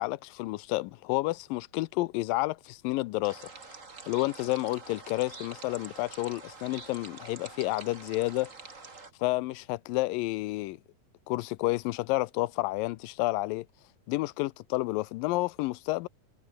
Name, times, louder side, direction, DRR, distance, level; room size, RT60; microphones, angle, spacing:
voice 1, 0.0-3.5 4.1-8.5 9.2-10.8 11.3-13.7 14.1-16.1, left 20 dB, 80° left, 2.4 m, -30 dB
sound 1, 3.2-9.1, right 4 dB, 25° right, 2.6 m, -46 dB
omnidirectional pair, 4.0 m